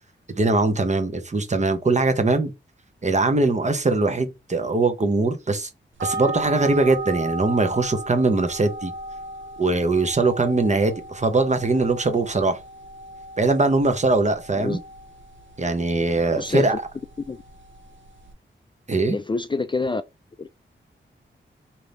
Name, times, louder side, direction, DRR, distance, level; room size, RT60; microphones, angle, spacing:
voice 1, 0.3-2.5 3.0-5.7 6.0-8.9 9.6-12.6 13.4-14.8 15.6-16.8 18.9-19.2, right 3 dB, 35° right, 0.9 m, -21 dB
sound 1, 6.0-18.3, right 2 dB, 75° right, 0.8 m, -36 dB
voice 2, 16.4-16.8 17.2-17.4 19.1-20.0 20.4-20.5, left 3 dB, 25° left, 0.3 m, -27 dB
3.9 x 2.8 x 3.4 m
wide cardioid pair, 80°, 20 cm